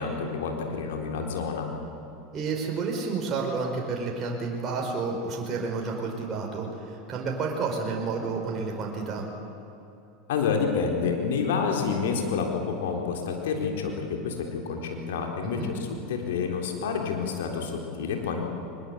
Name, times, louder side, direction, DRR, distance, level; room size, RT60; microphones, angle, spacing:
voice 1, 0.0-1.7 10.3-15.8 16.1-18.4, left 5 dB, 70° left, 2 dB, 3.9 m, -28 dB
voice 2, 2.3-9.2 15.4-15.7, right 4 dB, 35° right, 0 dB, 5.0 m, -30 dB
23.0 x 21.0 x 8.2 m, 2.8 s
hypercardioid pair, 85°, 0 cm